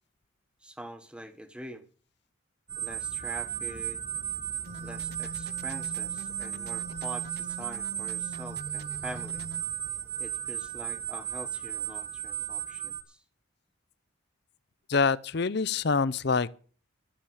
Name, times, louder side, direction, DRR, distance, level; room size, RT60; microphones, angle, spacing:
voice 1, 0.6-1.9 2.8-4.0 4.8-9.4 10.2-13.2, equal, 5° right, 1.2 m, -44 dB
sound 1, 2.7-13.0, right 11 dB, 30° right, 1.2 m, -35 dB
sound 2, 4.6-9.6, right 1 dB, 50° right, 0.7 m, -43 dB
voice 2, 14.9-16.5, left 4 dB, 55° left, 0.6 m, -25 dB
13.0 x 7.3 x 8.7 m
head